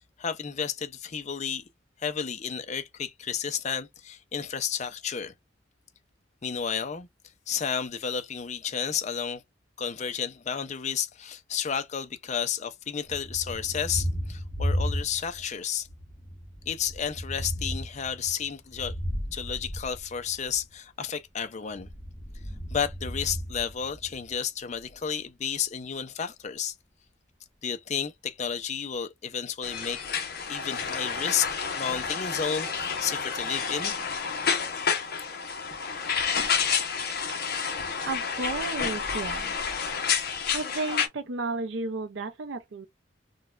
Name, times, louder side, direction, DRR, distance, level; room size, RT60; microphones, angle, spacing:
voice 1, 0.2-1.7 2.0-5.3 6.4-7.1 7.5-9.4 9.8-15.9 16.7-19.0 19.3-21.9 22.7-26.7 27.6-30.0 30.5-31.5 31.8-33.9, left 7 dB, 40° left, 0.5 m, -32 dB
Thunder, 13.1-15.5 15.8-20.6 21.7-24.3, equal, 5° right, 0.9 m, -34 dB
sound 1, 29.6-41.1, left 6 dB, 55° left, 0.9 m, -30 dB
voice 2, 37.6-39.5 40.2-42.9, right 3 dB, 75° right, 0.6 m, -34 dB
3.8 x 2.2 x 2.4 m
head